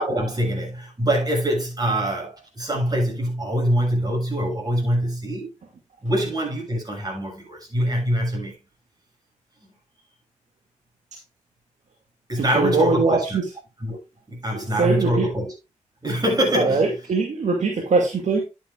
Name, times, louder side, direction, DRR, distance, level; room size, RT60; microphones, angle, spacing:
voice 1, 0.0-5.5 6.0-8.5 12.3-13.4 13.8-14.0 14.3-15.5 16.0-16.9, right 1 dB, 30° right, 6.6 m, -24 dB
voice 2, 12.4-13.5 14.8-15.3 16.5-18.4, right 4 dB, 60° right, 2.3 m, -21 dB
11.5 x 8.0 x 2.5 m
cardioid pair, 65°, 13 cm